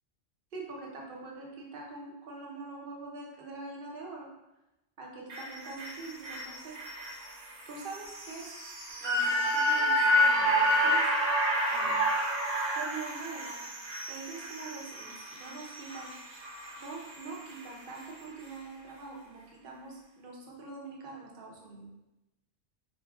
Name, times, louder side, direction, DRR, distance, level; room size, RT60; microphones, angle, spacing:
voice 1, 0.5-4.3 5.0-6.8 7.7-8.5 9.0-11.1 11.7-12.1 12.8-13.6 14.0-16.1 16.8-21.9, right 3 dB, 55° right, -2 dB, 0.8 m, -44 dB
sound 1, 5.3-17.6 18.0-18.1, equal, 80° right, 1.1 m, -30 dB
3.9 x 2.7 x 2.3 m, 0.95 s
omnidirectional pair, 1.3 m